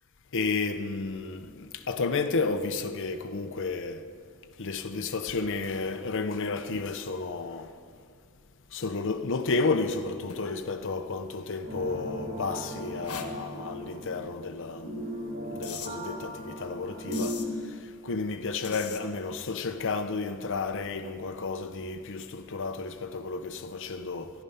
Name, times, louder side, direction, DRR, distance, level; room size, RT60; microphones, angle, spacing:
voice 1, 0.3-4.0 4.6-7.7 8.7-15.1 15.5-17.4 18.0-24.3, left 4 dB, 60° left, 0.7 m, -32 dB
sound 1, 10.3-10.6 11.4-11.5 13.0-13.3 15.6-15.9 17.1-17.5 18.6-19.0, left 7 dB, 75° left, 1.2 m, -40 dB
sound 2, 11.6-17.3, right 1 dB, 60° right, 3.7 m, -37 dB
14.0 x 11.5 x 5.6 m
head